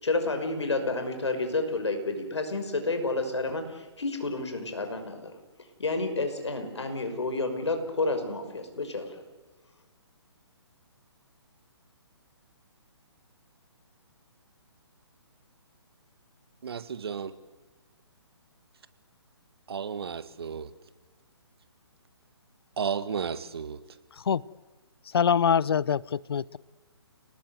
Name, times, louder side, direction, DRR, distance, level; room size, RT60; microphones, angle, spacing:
voice 1, 0.0-5.3 5.8-9.1, left 3 dB, 75° left, 5.9 m, -30 dB
voice 2, 16.6-17.3 19.7-20.7 22.8-23.8, right 6 dB, 60° right, 1.8 m, -33 dB
voice 3, 25.1-26.6, left 7 dB, 60° left, 0.8 m, -24 dB
30.0 x 19.5 x 8.1 m
figure-of-eight pair, 140°, 14 cm